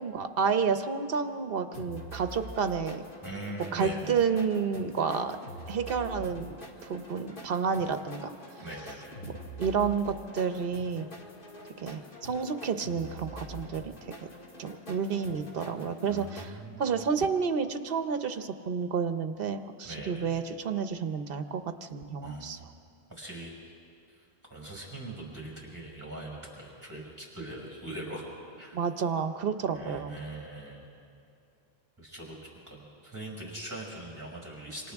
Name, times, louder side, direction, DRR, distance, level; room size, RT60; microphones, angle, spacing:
voice 1, 0.0-3.0 3.7-5.4 5.7-6.6 6.8-8.3 9.2-9.3 9.6-11.1 11.8-13.9 14.6-22.6 28.7-30.2, right 6 dB, 65° right, 9 dB, 1.0 m, -30 dB
sound 1, 1.7-16.5, left 1 dB, 55° left, 2.0 m, -45 dB
voice 2, 3.2-4.1 8.6-9.2 16.1-16.8 19.8-20.4 22.2-22.6 23.2-23.5 24.5-28.2 28.6-28.8 29.7-30.8 32.0-32.4 32.7-34.9, right 1 dB, 15° right, -3 dB, 5.4 m, -41 dB
27.5 x 26.5 x 3.6 m, 2.6 s
omnidirectional pair, 1.1 m